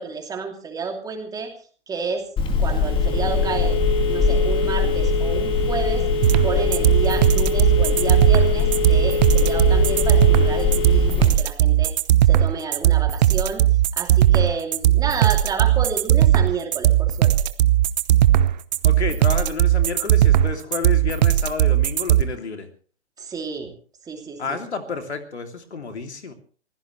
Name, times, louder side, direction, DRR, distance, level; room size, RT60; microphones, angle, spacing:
voice 1, 0.0-1.5 1.9-2.3 2.6-3.8 4.1-6.0 6.4-11.9 12.3-13.6 13.9-17.3 23.2-23.8 24.0-24.6, right 5 dB, 10° right, 3 dB, 2.8 m, -30 dB
Telephone, 2.4-11.3, left 4 dB, 15° left, 2.1 m, -21 dB
sound 1, 6.2-22.2, right 12 dB, 40° right, 0.9 m, -17 dB
voice 2, 18.8-22.7 24.4-26.3, left 4 dB, 75° left, 6 dB, 2.9 m, -30 dB
25.0 x 16.0 x 3.2 m, 0.42 s
figure-of-eight pair, 130°, 33 cm